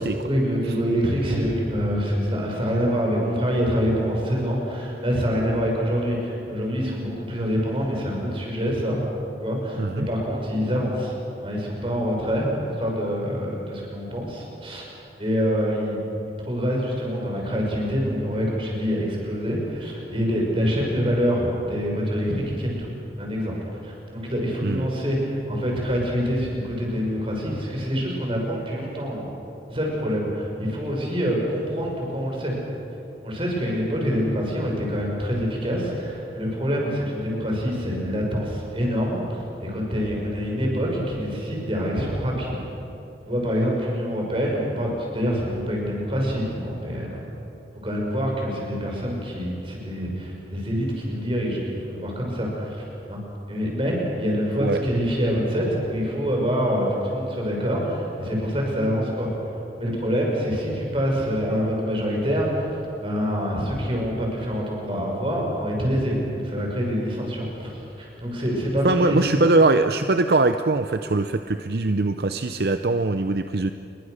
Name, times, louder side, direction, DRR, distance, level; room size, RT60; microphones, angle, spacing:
voice 1, 0.2-9.0 9.4-11.1 11.4-16.0 16.4-22.9 23.2-23.5 23.8-29.3 29.7-32.5 33.2-42.5 43.2-47.2 47.8-53.2 53.5-62.7 63.0-69.2, equal, 30° right, -1 dB, 6.3 m, -26 dB
voice 2, 9.8-10.1 24.6-24.9 54.6-54.8 68.8-73.7, right 2 dB, 60° right, 8 dB, 0.7 m, -21 dB
28.5 x 22.5 x 6.6 m, 2.8 s
head